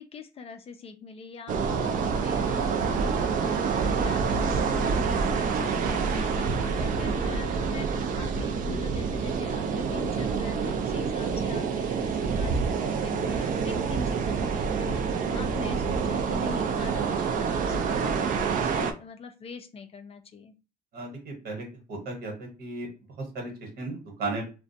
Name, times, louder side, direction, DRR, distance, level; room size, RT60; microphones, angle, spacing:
voice 1, 0.0-20.5, left 5 dB, 35° left, 7 dB, 0.4 m, -42 dB
sound 1, 1.5-18.9, right 5 dB, 55° right, 0.4 m, -27 dB
voice 2, 20.9-22.9 23.2-24.4, right 2 dB, 70° right, 1 dB, 1.1 m, -35 dB
2.4 x 2.1 x 2.6 m, 0.32 s
cardioid pair, 110°, 17 cm